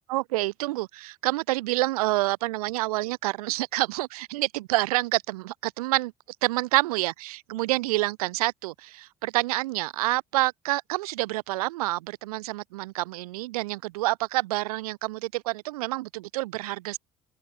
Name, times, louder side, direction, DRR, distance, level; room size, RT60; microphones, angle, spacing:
voice 1, 0.1-6.1 6.4-17.0, right 19 dB, 65° right, 0.5 m, -28 dB
figure-of-eight pair, 60°, 20 cm